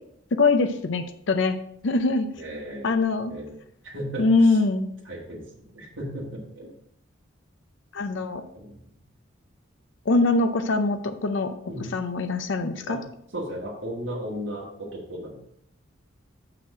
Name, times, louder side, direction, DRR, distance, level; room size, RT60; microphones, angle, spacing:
voice 1, 0.3-1.6 1.8-2.3 2.8-3.3 4.2-4.9 7.9-8.4 10.1-11.5 11.9-13.0, left 3 dB, 65° left, 8 dB, 0.5 m, -23 dB
voice 2, 2.3-3.5 3.8-4.6 5.1-6.7 8.5-8.8 11.7-12.0 12.9-13.0 13.3-15.4, equal, 65° right, -4 dB, 1.9 m, -35 dB
6.4 x 5.8 x 4.9 m, 0.70 s
head